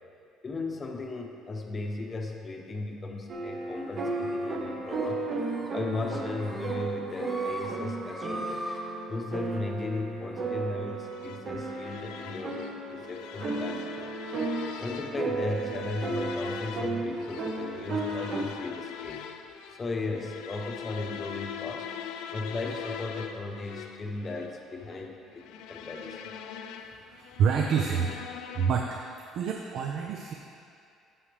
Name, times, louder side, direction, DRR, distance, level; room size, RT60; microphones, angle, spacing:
voice 1, 0.4-5.2 5.7-8.7 9.1-14.1 14.8-19.3 19.8-21.9 22.3-26.2, left 3 dB, 25° left, 2 dB, 0.8 m, -36 dB
sound 1, 3.3-18.5, right 3 dB, 40° right, 0.9 m, -34 dB
sound 2, 4.0-4.6 4.9-5.1 5.4-5.7 6.0-6.7 7.1-7.7 8.0-8.8, right 1 dB, 10° right, 1.0 m, -40 dB
sound 3, 11.0-29.1, left 8 dB, 90° left, 0.4 m, -42 dB
voice 2, 27.1-28.1 28.5-29.0 29.3-30.3, right 6 dB, 60° right, 2 dB, 0.6 m, -27 dB
13.0 x 5.6 x 3.4 m, 2.5 s
cardioid pair, 125°, 0 cm